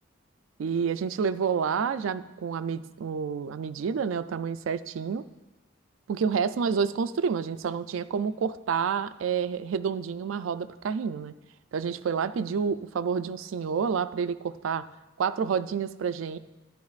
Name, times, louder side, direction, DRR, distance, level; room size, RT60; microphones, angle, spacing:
voice 1, 0.6-5.2 6.1-11.3 11.7-14.8 15.2-16.4, right 6 dB, 80° right, 13 dB, 0.4 m, -29 dB
11.0 x 9.4 x 2.4 m, 1.1 s
head